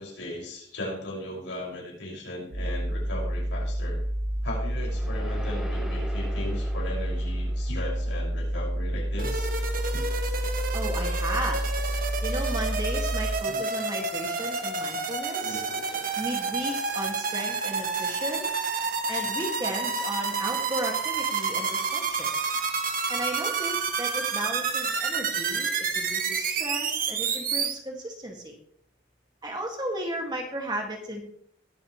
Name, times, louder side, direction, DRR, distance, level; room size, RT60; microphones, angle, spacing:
voice 1, 0.0-4.0 4.4-10.1 13.5-13.6 15.4-16.1, left 1 dB, 70° left, -3 dB, 6.1 m, -37 dB
sound 1, 2.5-13.4, equal, 80° right, 5.1 m, -29 dB
sound 2, 4.1-8.4, equal, 5° right, 3.1 m, -44 dB
sound 3, 9.2-27.7, right 5 dB, 45° right, 1.4 m, -29 dB
voice 2, 10.7-11.7 12.2-15.6 16.2-18.5 19.1-22.3 23.1-28.5 29.4-31.2, right 1 dB, 20° right, 1 dB, 2.1 m, -34 dB
21.0 x 8.5 x 3.2 m, 0.64 s
head